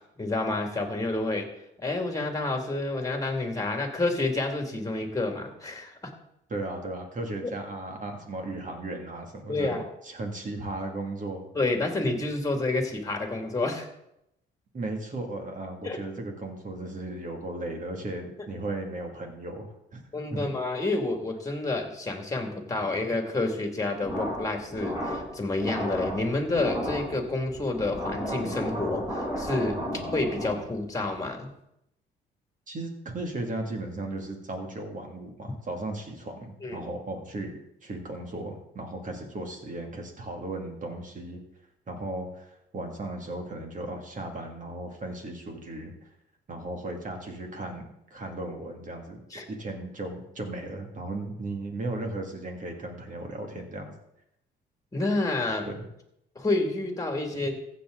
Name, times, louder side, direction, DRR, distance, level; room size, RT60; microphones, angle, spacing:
voice 1, 0.2-1.5 1.8-6.1 9.5-9.8 11.5-13.9 15.8-16.0 20.1-31.5 36.6-36.8 49.3-49.5 54.9-55.7 56.4-57.5, left 2 dB, 15° left, 3 dB, 2.4 m, -29 dB
voice 2, 6.5-11.4 14.7-20.0 20.3-20.5 32.7-37.5 37.8-41.4 41.9-46.1 46.5-47.8 48.1-53.9 55.7-55.8, right 2 dB, 40° right, 3 dB, 2.4 m, -36 dB
sound 1, 24.0-30.9, equal, 15° right, 4.7 m, -34 dB
15.0 x 7.4 x 3.9 m, 0.81 s
cardioid pair, 90°, 20 cm